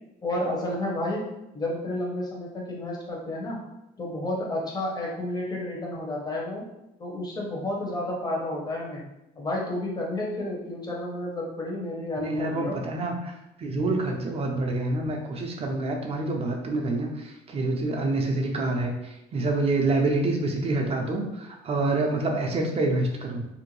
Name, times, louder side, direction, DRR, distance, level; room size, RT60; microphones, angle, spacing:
voice 1, 0.2-1.2 1.5-3.6 4.0-6.6 7.0-9.0 9.4-12.8, left 1 dB, 25° left, -2 dB, 0.8 m, -31 dB
voice 2, 12.2-23.5, right 2 dB, 35° right, 2 dB, 0.4 m, -27 dB
2.5 x 2.1 x 3.0 m, 0.89 s
cardioid pair, 110°, 17 cm